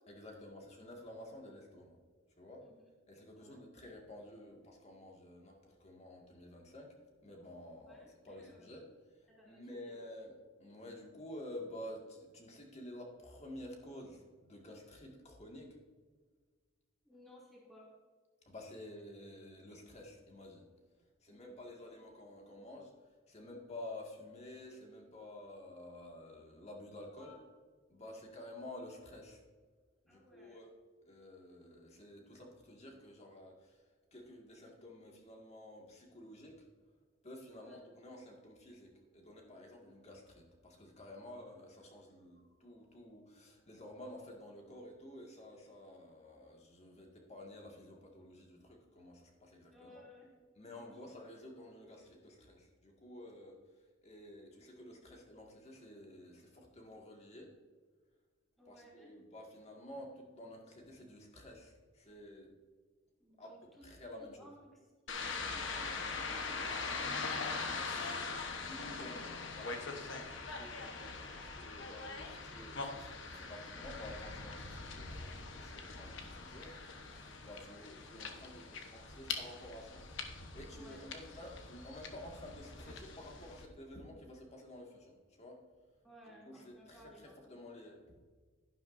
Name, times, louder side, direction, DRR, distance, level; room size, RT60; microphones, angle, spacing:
voice 1, 0.1-2.0 2.4-2.7 3.1-6.9 7.2-15.8 18.5-20.7 21.2-27.4 27.9-29.4 30.0-30.8 31.1-33.8 34.1-36.7 37.2-50.0 50.6-53.6 54.0-57.6 58.7-62.5 63.4-64.5 68.6-69.8 70.1-80.1 80.5-85.7 86.3-88.2, left 1 dB, 35° left, 0 dB, 2.0 m, -51 dB
voice 2, 3.3-3.7 7.9-8.7 9.3-10.1 17.0-17.9 21.3-21.8 27.2-27.4 28.1-28.3 30.1-30.6 37.5-37.8 49.7-50.3 50.7-51.1 58.6-59.2 63.2-64.9 65.2-67.8 68.5-69.1 77.6-77.9 80.7-81.0 86.0-87.6 87.9-88.0, equal, ahead, -5 dB, 2.8 m, -59 dB
sound 1, 65.1-83.7, left 4 dB, 65° left, 1.2 m, -42 dB
11.5 x 11.0 x 2.7 m, 1.5 s
head